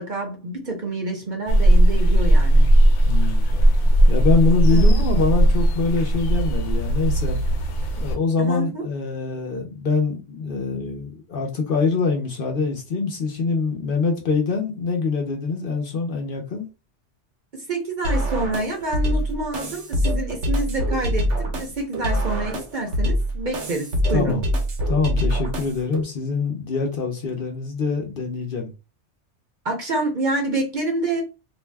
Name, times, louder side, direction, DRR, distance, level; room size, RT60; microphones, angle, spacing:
voice 1, 0.0-2.7 4.7-5.0 8.4-8.8 17.5-24.4 29.6-31.2, right 2 dB, 50° right, 0.7 m, -27 dB
sound 1, 1.5-8.2, right 1 dB, 90° left, 1.0 m, -17 dB
voice 2, 3.0-3.5 4.1-7.4 8.0-16.7 24.1-24.4 24.9-28.7, left 4 dB, 55° left, 0.7 m, -24 dB
sound 2, 18.0-26.0, equal, 85° right, 1.2 m, -24 dB
2.6 x 2.1 x 3.2 m
omnidirectional pair, 1.2 m